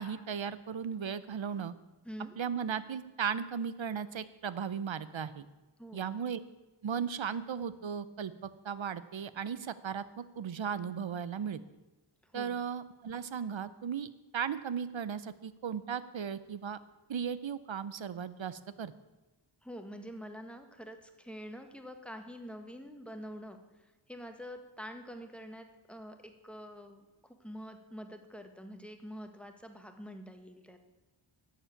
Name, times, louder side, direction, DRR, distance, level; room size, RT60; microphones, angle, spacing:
voice 1, 0.0-1.7 2.4-5.5 5.9-6.4 6.8-11.6 12.3-16.8 17.1-18.9, right 7 dB, 65° right, 15 dB, 0.7 m, -36 dB
voice 2, 5.8-6.1 12.2-12.6 19.6-23.6 24.1-27.1 27.4-30.8, equal, ahead, 6 dB, 1.4 m, -46 dB
11.0 x 7.3 x 8.4 m, 1.2 s
wide cardioid pair, 80°, 50 cm